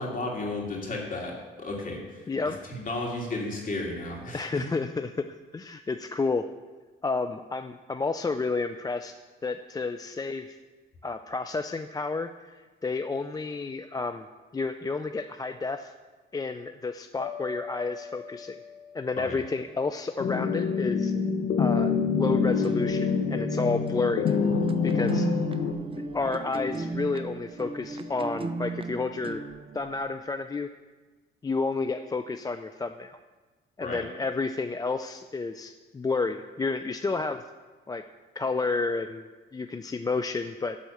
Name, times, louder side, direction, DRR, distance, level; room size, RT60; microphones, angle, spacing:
voice 1, 0.0-2.0 2.4-4.6 19.2-19.4 33.8-34.0, left 2 dB, 40° left, -1 dB, 2.7 m, -33 dB
voice 2, 2.3-2.6 4.3-5.3 5.5-6.5 7.0-10.6 11.0-14.3 14.5-15.9 16.3-18.6 18.9-21.1 21.6-24.3 24.8-25.3 26.1-29.4 29.7-30.7 31.4-33.2 33.8-37.4 37.9-38.0 38.4-40.8, left 3 dB, 20° left, 8 dB, 0.4 m, -31 dB
sound 1, 17.2-20.3, left 6 dB, 80° left, 1.3 m, -42 dB
sound 2, 20.2-25.7, left 5 dB, 60° left, 1.0 m, -26 dB
sound 3, 22.5-30.2, right 3 dB, 25° right, 0.6 m, -37 dB
12.5 x 4.2 x 7.9 m, 1.3 s
cardioid pair, 90°, 20 cm